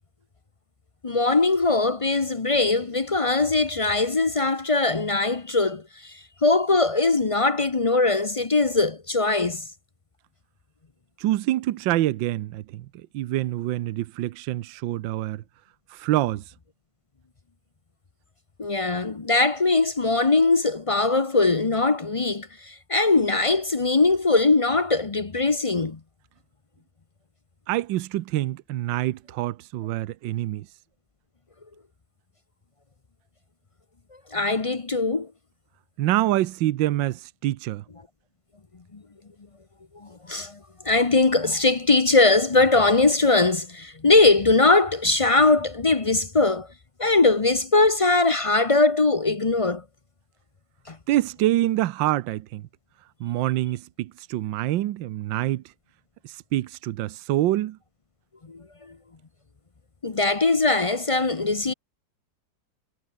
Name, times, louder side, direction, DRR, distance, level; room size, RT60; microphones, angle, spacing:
voice 1, 1.0-9.7 18.6-26.0 34.3-35.3 38.9-39.0 40.0-40.6 40.8-46.7 47.0-49.8 50.9-51.0 58.5-58.9 60.0-61.7, left 3 dB, 35° left, 0.5 m, -21 dB
voice 2, 11.2-12.9 13.1-15.4 15.9-16.4 27.7-30.7 36.0-37.8 51.1-52.7 53.2-55.6 56.2-57.8, right 15 dB, 80° right, 1.4 m, -26 dB
omnidirectional pair, 2.1 m